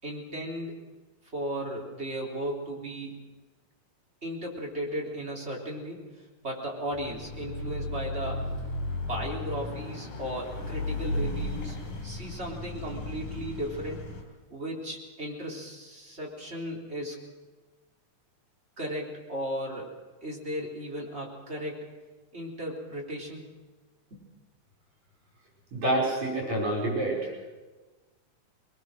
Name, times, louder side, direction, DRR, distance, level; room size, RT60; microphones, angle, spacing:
voice 1, 0.0-0.8 1.3-3.2 4.2-6.1 6.4-8.5 9.1-14.1 14.5-17.2 18.8-19.9 20.2-21.9 22.3-23.5 24.1-24.2, equal, 20° right, -2 dB, 3.7 m, -36 dB
Car passing by / Accelerating revving vroom, 6.9-14.2, left 2 dB, 75° left, 4.9 m, -35 dB
voice 2, 25.7-27.3, right 1 dB, 65° right, -1 dB, 6.7 m, -27 dB
23.0 x 21.0 x 6.4 m, 1.2 s
omnidirectional pair, 3.6 m